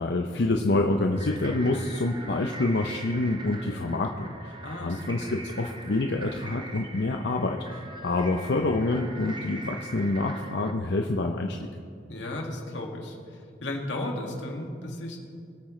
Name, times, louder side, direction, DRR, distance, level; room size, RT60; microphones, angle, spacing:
voice 1, 0.0-4.5 4.8-11.6, left 2 dB, 65° left, 3 dB, 0.6 m, -27 dB
sound 1, 1.1-10.7, right 2 dB, 25° right, 0.9 m, -43 dB
voice 2, 4.6-5.2 12.1-13.2 13.6-15.2, left 1 dB, 90° left, 0 dB, 2.0 m, -34 dB
22.0 x 8.7 x 3.2 m, 2.4 s
head